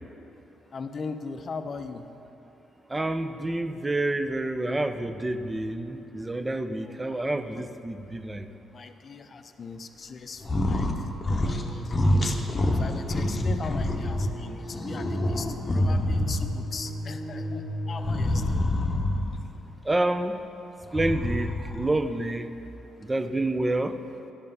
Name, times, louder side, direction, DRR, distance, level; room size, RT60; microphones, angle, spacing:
voice 1, 0.7-2.1 6.8-7.7 8.7-11.9 12.2-12.4 12.7-18.6, left 4 dB, 45° left, 8 dB, 0.5 m, -39 dB
voice 2, 2.9-8.5 13.1-13.3 19.8-20.4 20.9-22.5 23.0-24.0, right 2 dB, 15° right, 9 dB, 0.5 m, -28 dB
sound 1, 10.4-11.0 11.2-11.6 11.9-14.3 14.7-16.6 18.0-19.4 20.8-21.9, left 1 dB, 30° left, 0.8 m, -26 dB
sound 2, 11.4-18.4, equal, 80° right, 1.4 m, -37 dB
10.0 x 5.5 x 5.4 m, 2.9 s
cardioid pair, 90°, 0 cm